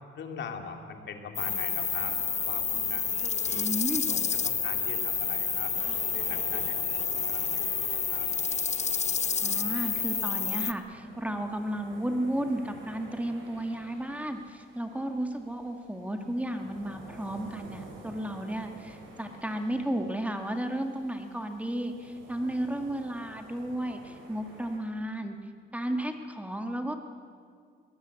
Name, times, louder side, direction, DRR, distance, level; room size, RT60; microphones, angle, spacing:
voice 1, 0.1-3.1 3.4-3.7 4.1-5.7 6.1-6.8 7.1-8.3, left 6 dB, 65° left, 4 dB, 2.8 m, -42 dB
sound 1, 1.4-10.7, left 6 dB, 35° left, 0.9 m, -29 dB
voice 2, 3.5-4.0 9.4-25.4 25.7-27.0, right 1 dB, 5° right, 5 dB, 1.8 m, -33 dB
sound 2, 5.2-24.8, right 2 dB, 85° right, 6.0 m, -51 dB
22.0 x 19.0 x 8.3 m, 2.2 s
cardioid pair, 90°, 20 cm